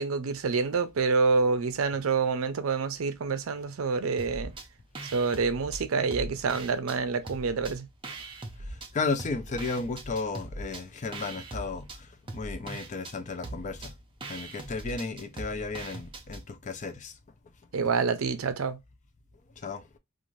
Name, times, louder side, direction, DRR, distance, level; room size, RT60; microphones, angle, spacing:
voice 1, 0.0-4.5 5.1-7.9 17.7-18.8, right 4 dB, 70° right, 0.5 m, -27 dB
sound 1, 4.2-4.7 5.0-7.0 7.3-8.9 9.2-16.4, right 2 dB, 25° right, 0.5 m, -41 dB
voice 2, 8.7-13.9 14.3-17.1 19.6-19.8, left 4 dB, 35° left, 0.4 m, -34 dB
2.6 x 2.4 x 3.0 m
head